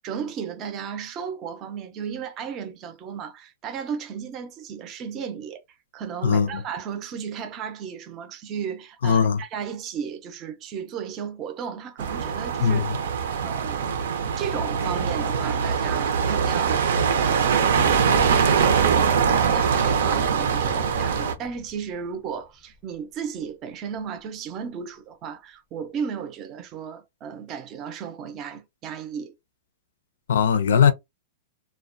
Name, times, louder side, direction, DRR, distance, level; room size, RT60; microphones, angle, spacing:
voice 1, 0.0-5.6 5.9-12.9 13.4-14.0 14.4-16.9 17.2-17.8 18.4-29.3, right 7 dB, 30° right, 0.5 m, -34 dB
voice 2, 9.0-9.4 12.6-12.8 30.3-30.9, left 7 dB, 85° left, 0.5 m, -19 dB
sound 1, 12.0-21.3, right 6 dB, 80° right, 0.5 m, -22 dB
Boom, 17.7-22.5 22.7-22.8 24.0-24.1, left 8 dB, 25° left, 0.4 m, -39 dB
2.2 x 2.1 x 2.5 m
hypercardioid pair, 150°, 0 cm